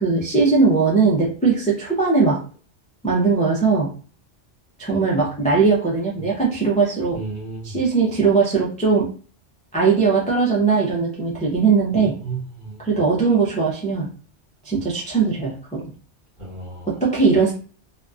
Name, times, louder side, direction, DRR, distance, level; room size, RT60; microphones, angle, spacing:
voice 1, 0.0-2.4 3.0-3.9 4.8-7.2 7.6-9.1 9.7-12.1 12.8-14.1 14.6-15.9 16.9-17.5, right 4 dB, 10° left, 0.3 m, -19 dB
voice 2, 7.1-7.8 11.9-12.8 16.4-16.9, right 4 dB, 45° right, 1.2 m, -33 dB
2.7 x 2.3 x 2.3 m
omnidirectional pair, 1.2 m